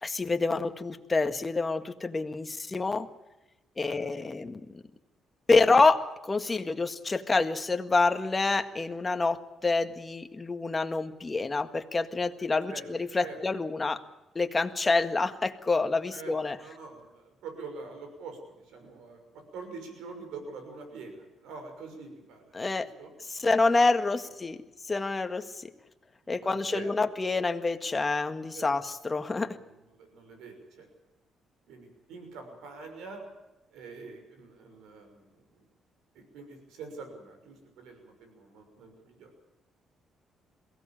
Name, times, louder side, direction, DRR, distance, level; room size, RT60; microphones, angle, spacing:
voice 1, 0.0-3.1 3.8-4.6 5.5-14.0 14.4-16.6 22.5-22.9 23.3-24.6 24.9-25.7 26.3-29.6, left 3 dB, 25° left, 7 dB, 1.7 m, -27 dB
voice 2, 3.8-4.2 12.7-12.9 13.1-13.4 16.1-16.3 16.6-23.1 26.2-27.0 28.5-28.8 29.4-30.9 31.7-33.2 33.7-35.7 36.1-39.3, right 4 dB, 90° right, 5 dB, 6.3 m, -45 dB
22.5 x 17.0 x 8.8 m, 1.0 s
cardioid pair, 90°, 0 cm